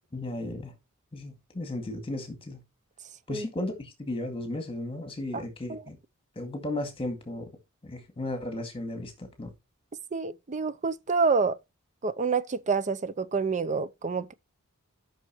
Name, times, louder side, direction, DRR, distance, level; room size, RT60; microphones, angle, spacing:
voice 1, 0.1-0.7 1.1-2.6 3.3-6.0 6.4-7.5 7.8-9.5, left 1 dB, 25° left, 2.1 m, -35 dB
voice 2, 5.3-5.8 10.1-11.6 12.0-14.3, right 4 dB, 35° right, 0.6 m, -28 dB
13.0 x 6.2 x 3.0 m
head